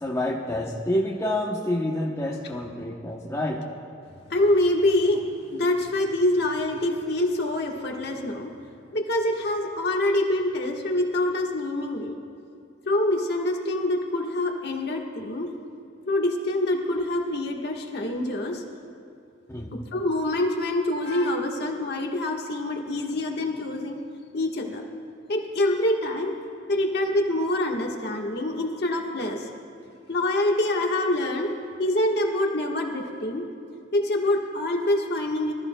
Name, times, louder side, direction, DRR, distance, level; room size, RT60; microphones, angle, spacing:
voice 1, 0.0-3.6 19.5-19.7, left 1 dB, 15° left, -2 dB, 0.8 m, -28 dB
voice 2, 4.3-5.2 5.5-8.5 8.9-12.1 12.8-15.5 16.1-18.6 19.9-24.0 24.3-24.8 25.3-26.3 26.7-29.5 30.1-31.5 31.8-33.5 33.9-35.5, left 1 dB, 55° left, 1 dB, 1.4 m, -25 dB
24.0 x 14.0 x 2.2 m, 2.6 s
head